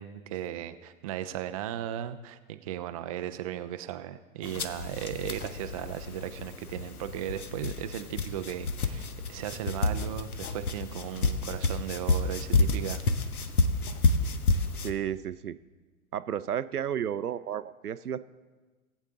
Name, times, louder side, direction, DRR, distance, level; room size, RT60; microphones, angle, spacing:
voice 1, 0.0-13.0, right 12 dB, 25° right, 9 dB, 0.4 m, -36 dB
sound 1, 4.4-14.9, left 3 dB, 75° left, 0.9 m, -30 dB
voice 2, 14.8-15.6 16.1-18.2, right 9 dB, 85° right, 14 dB, 0.6 m, -32 dB
18.5 x 8.2 x 3.6 m, 1.3 s
figure-of-eight pair, 105°, 44 cm